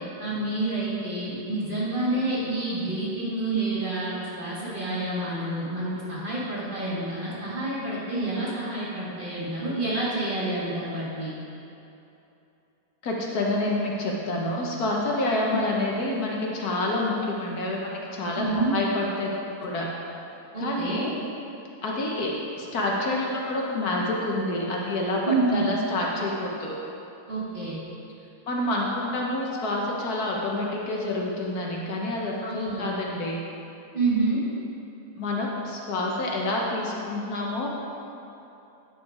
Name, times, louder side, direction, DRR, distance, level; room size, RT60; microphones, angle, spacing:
voice 1, 0.2-11.3 15.5-15.6 18.4-18.7 20.5-21.0 25.3-25.7 27.3-27.8 32.4-32.9 33.9-34.4, right 2 dB, 30° right, -8 dB, 2.1 m, -28 dB
voice 2, 13.0-17.8 18.1-19.3 19.6-19.9 20.6-21.1 21.8-22.3 22.6-26.8 28.5-33.4 35.2-37.7, left 2 dB, 65° left, -2 dB, 1.5 m, -28 dB
9.2 x 5.8 x 4.8 m, 2.9 s
omnidirectional pair, 1.7 m